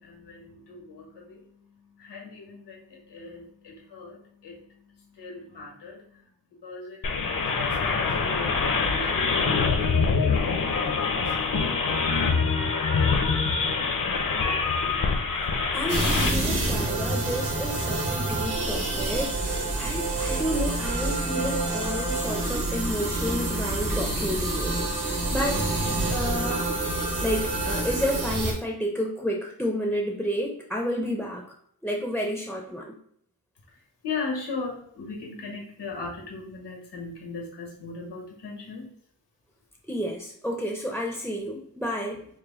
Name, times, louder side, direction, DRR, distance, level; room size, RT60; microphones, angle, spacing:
voice 1, 0.0-12.3 33.7-38.9, left 4 dB, 90° left, -1 dB, 1.5 m, -39 dB
sound 1, 7.0-16.3, left 4 dB, 55° left, 0.7 m, -25 dB
voice 2, 15.7-25.7 26.1-26.8 27.2-31.5 31.8-33.0 39.9-42.3, equal, ahead, 1 dB, 0.5 m, -31 dB
sound 2, 15.9-28.5, right 2 dB, 70° right, 1.4 m, -27 dB
4.9 x 2.1 x 3.6 m, 0.66 s
wide cardioid pair, 100°, 40 cm